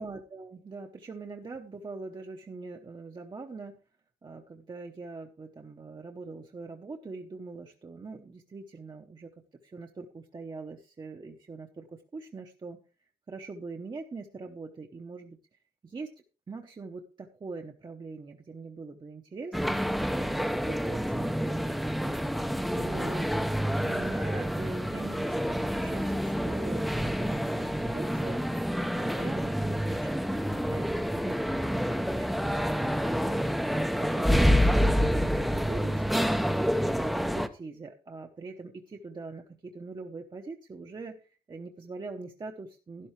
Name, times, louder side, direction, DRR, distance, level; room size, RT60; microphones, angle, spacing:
voice 1, 0.0-3.8 4.2-9.3 9.6-12.8 13.3-15.4 15.8-16.1 16.5-22.1 22.8-23.3 23.8-28.4 28.8-32.7 33.0-36.3 36.9-43.1, right 3 dB, 30° right, 2 dB, 0.9 m, -43 dB
sound 1, 19.5-37.5, equal, ahead, 0.6 m, -28 dB
12.0 x 11.5 x 3.2 m, 0.35 s
wide cardioid pair, 165°, 16 cm